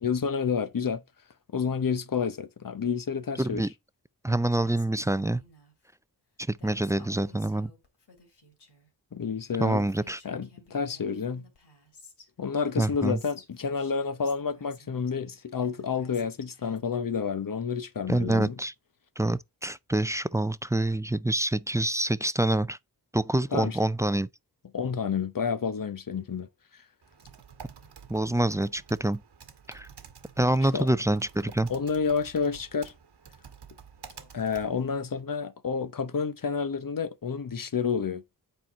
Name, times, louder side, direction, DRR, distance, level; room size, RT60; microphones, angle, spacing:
voice 1, 0.0-1.0 1.5-3.7 9.1-9.9 10.2-11.5 12.4-18.6 23.5-23.8 24.7-26.5 30.7-30.9 31.7-32.9 34.3-38.2, left 6 dB, 55° left, 0.9 m, -29 dB
voice 2, 3.4-3.7 4.2-5.4 6.5-7.7 9.6-10.2 12.8-13.2 18.1-18.7 19.2-22.8 23.1-24.3 28.1-29.2 29.7-29.9 30.4-31.7, right 1 dB, 10° right, 0.4 m, -26 dB
Female speech woman speaking, 4.5-5.7 6.6-8.9 9.5-9.6 9.8-12.3 12.6-15.1 15.6-16.8, left 2 dB, 80° left, 2.9 m, -54 dB
Typing, 27.0-35.2, right 7 dB, 80° right, 1.3 m, -50 dB
8.2 x 4.6 x 4.1 m
wide cardioid pair, 65°, 40 cm